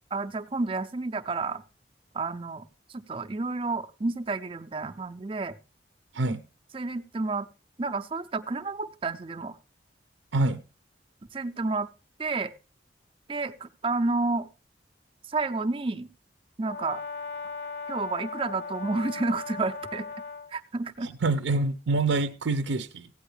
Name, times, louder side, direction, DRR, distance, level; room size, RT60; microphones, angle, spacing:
voice 1, 0.1-1.6 2.1-2.7 2.9-5.6 6.3-6.4 6.7-7.5 7.8-9.6 11.3-11.9 12.2-12.5 13.3-14.5 15.3-16.1 16.6-17.0 17.9-20.1 20.5-21.1, right 3 dB, 30° right, 0.5 m, -30 dB
Brass instrument, 16.6-20.5, left 4 dB, 60° left, 0.8 m, -38 dB
voice 2, 21.0-23.1, right 3 dB, 80° right, 0.6 m, -26 dB
16.0 x 9.0 x 3.3 m
head